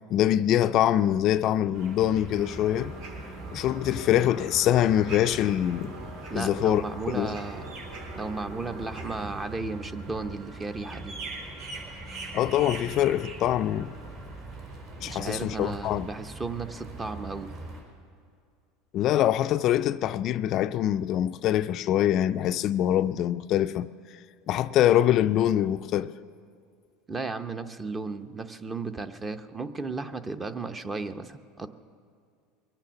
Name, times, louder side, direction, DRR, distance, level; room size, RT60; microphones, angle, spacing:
voice 1, 0.1-2.9 3.5-5.9 6.4-6.8 7.1-7.4 12.3-13.9 15.0-16.1 18.9-23.9 24.5-26.1, left 12 dB, 45° left, 0.3 m, -24 dB
sound 1, 1.7-17.8, right 2 dB, 55° right, 4.4 m, -41 dB
sound 2, 2.4-9.5, right 2 dB, 70° right, 4.2 m, -44 dB
voice 2, 6.3-7.7 8.1-11.1 15.0-17.5 27.1-31.7, right 3 dB, 20° right, 0.7 m, -34 dB
22.5 x 8.9 x 7.0 m
supercardioid pair, 130°, 0 cm